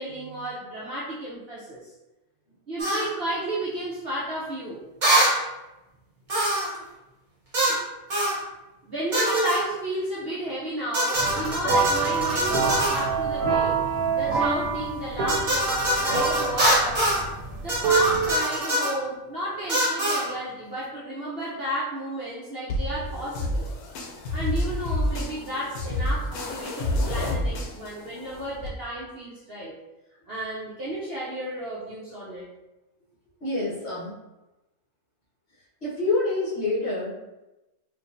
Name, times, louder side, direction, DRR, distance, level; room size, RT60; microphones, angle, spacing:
voice 1, 0.0-1.9 2.7-4.8 8.8-13.8 14.2-17.1 17.6-23.6 24.3-29.7 30.3-32.5, right 1 dB, 55° right, -7 dB, 0.8 m, -32 dB
sound 1, 2.8-3.1 5.0-5.4 6.3-6.8 7.5-7.8 8.1-8.4 9.1-9.6 10.9-13.1 15.3-17.2 17.7-18.9 19.7-20.3, right 1 dB, 35° right, 1.0 m, -24 dB
sound 2, 11.1-18.4, right 5 dB, 85° right, 1.1 m, -26 dB
sound 3, 22.7-28.7, left 1 dB, 80° left, 1.1 m, -29 dB
voice 2, 33.4-34.2 35.8-37.1, left 2 dB, 45° left, -9 dB, 1.8 m, -27 dB
4.5 x 2.5 x 2.6 m, 0.99 s
omnidirectional pair, 1.6 m